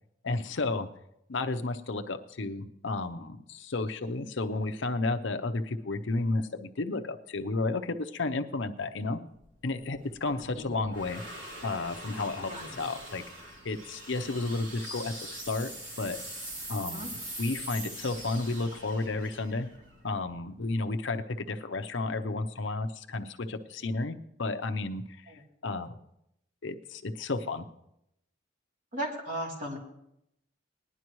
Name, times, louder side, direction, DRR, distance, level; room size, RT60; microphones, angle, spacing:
voice 1, 0.2-0.9 1.3-9.2 9.6-11.2 11.6-13.2 13.6-15.7 16.0-16.2 16.7-17.1 17.4-19.7 20.0-25.3 25.6-26.0 26.6-27.7, left 3 dB, 65° left, 7 dB, 0.7 m, -32 dB
sound 1, 9.4-20.7, right 1 dB, 65° right, 3.1 m, -43 dB
voice 2, 12.5-12.9 16.9-17.1 25.3-25.4 28.9-29.8, right 1 dB, 40° right, -3 dB, 2.9 m, -36 dB
19.5 x 11.0 x 3.1 m, 0.80 s
head